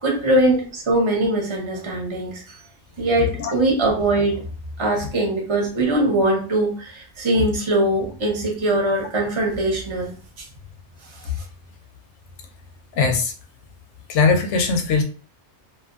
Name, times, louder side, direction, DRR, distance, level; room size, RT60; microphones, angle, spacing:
voice 1, 0.0-2.6 3.0-4.4 4.8-10.1 10.4-10.5, right 1 dB, 30° right, -1 dB, 0.8 m, -21 dB
voice 2, 13.0-13.3 14.1-15.0, left 4 dB, 85° left, 5 dB, 0.9 m, -19 dB
2.6 x 2.4 x 2.4 m, 0.37 s
omnidirectional pair, 1.2 m